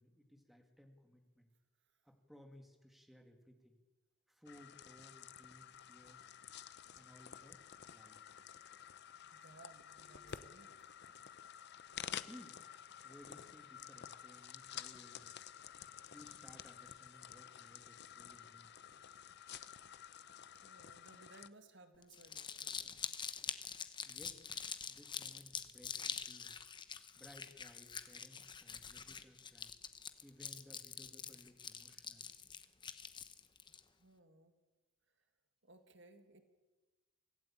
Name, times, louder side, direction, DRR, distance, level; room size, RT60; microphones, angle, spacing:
voice 1, 0.0-1.5 2.0-3.8 4.3-6.3 7.0-7.6 7.9-8.2 12.1-12.6 13.0-15.4 16.1-18.8 24.1-24.5 24.9-26.6 27.2-29.7 30.2-32.3, equal, ahead, 4 dB, 2.1 m, -60 dB
sound 1, 4.5-21.5, left 9 dB, 50° left, 0.7 m, -51 dB
voice 2, 9.3-10.9 19.4-19.7 20.6-23.1 34.0-34.5 35.6-36.4, right 2 dB, 55° right, 8 dB, 1.9 m, -62 dB
Crumpling crinkling, 22.0-33.8, left 6 dB, 20° left, 1.0 m, -45 dB
25.0 x 16.0 x 8.7 m, 1.2 s
head